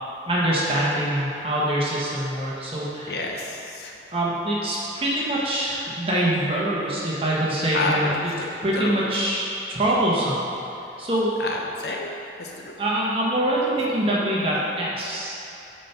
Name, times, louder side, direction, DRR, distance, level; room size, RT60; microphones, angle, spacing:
voice 1, 0.3-3.6 4.1-8.3 8.6-10.4 11.0-11.3 12.8-15.4, right 1 dB, 30° right, -6 dB, 1.3 m, -24 dB
voice 2, 3.1-3.9 7.7-8.0 8.4-8.5 8.7-8.9 11.4-12.1 12.4-12.7, left 3 dB, 65° left, 0 dB, 0.8 m, -29 dB
7.0 x 4.4 x 5.9 m, 2.8 s
head